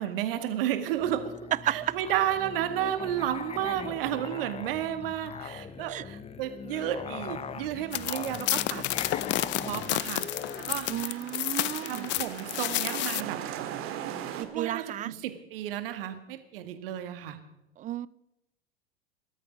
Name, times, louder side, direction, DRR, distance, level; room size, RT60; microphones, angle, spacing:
voice 1, 0.0-1.3 1.6-8.9 9.4-10.2 10.6-11.2 11.8-13.4 14.4-17.4, right 11 dB, 60° right, 9 dB, 2.0 m, -32 dB
Musical instrument, 0.9-11.1, left 6 dB, 20° left, 1.0 m, -41 dB
sound 1, 7.4-14.5, right 10 dB, 45° right, 2.0 m, -41 dB
sound 2, 7.9-13.2, left 17 dB, 35° left, 0.6 m, -31 dB
voice 2, 10.9-12.1 14.4-15.1 17.8-18.1, right 13 dB, 25° right, 21 dB, 0.5 m, -33 dB
19.0 x 13.0 x 5.3 m, 0.88 s
figure-of-eight pair, 80°, 31 cm